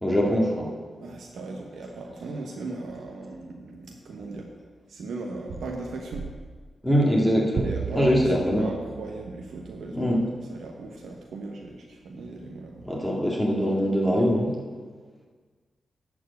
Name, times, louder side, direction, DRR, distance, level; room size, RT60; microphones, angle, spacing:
voice 1, 0.0-0.7 6.8-7.7 7.9-8.7 9.9-10.3 12.8-14.5, equal, 5° left, -3 dB, 2.0 m, -22 dB
voice 2, 1.0-4.5 4.9-6.2 7.6-8.2 8.6-10.2 10.5-12.9, right 3 dB, 90° right, 0 dB, 1.0 m, -37 dB
sound 1, 7.6-10.2, right 6 dB, 60° right, 0.4 m, -35 dB
11.0 x 4.7 x 8.0 m, 1.5 s
cardioid pair, 80°, 0 cm